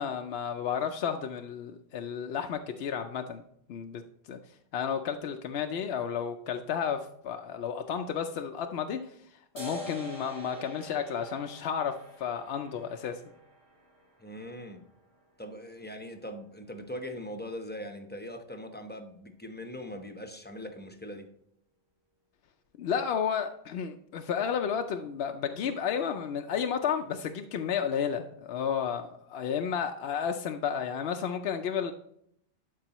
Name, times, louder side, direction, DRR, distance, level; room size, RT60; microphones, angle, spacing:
voice 1, 0.0-3.4 3.7-4.0 4.3-4.4 4.7-9.2 9.5-13.2 22.8-31.9, left 7 dB, 75° left, 5 dB, 0.8 m, -32 dB
sound 1, 9.6-16.5, equal, 75° right, 2.5 m, -47 dB
voice 2, 14.2-14.8 15.4-21.3, equal, 10° left, 5 dB, 0.8 m, -41 dB
12.0 x 4.8 x 3.0 m, 0.71 s
omnidirectional pair, 1.1 m